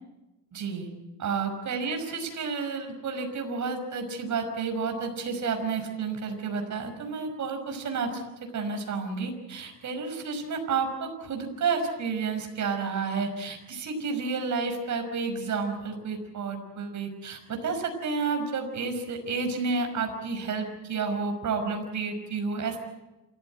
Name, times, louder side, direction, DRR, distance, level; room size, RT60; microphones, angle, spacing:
voice 1, 0.5-0.9 1.2-22.8, right 4 dB, 55° right, 5 dB, 5.5 m, -31 dB
28.0 x 15.0 x 9.2 m, 1.0 s
cardioid pair, 105°, 34 cm